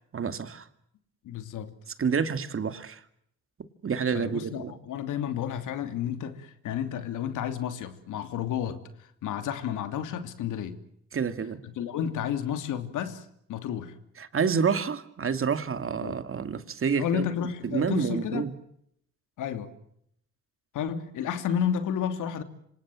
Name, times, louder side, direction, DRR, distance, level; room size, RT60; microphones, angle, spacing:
voice 1, 0.1-0.7 2.0-3.0 3.8-4.7 11.1-11.6 14.2-17.2 17.6-18.5, right 6 dB, 45° right, 2.5 m, -28 dB
voice 2, 1.2-1.7 4.1-10.8 11.6-14.0 16.0-16.2 17.0-18.5 19.4-19.7 20.7-22.4, left 9 dB, 85° left, 2.9 m, -31 dB
27.0 x 26.5 x 7.7 m
cardioid pair, 90°, 30 cm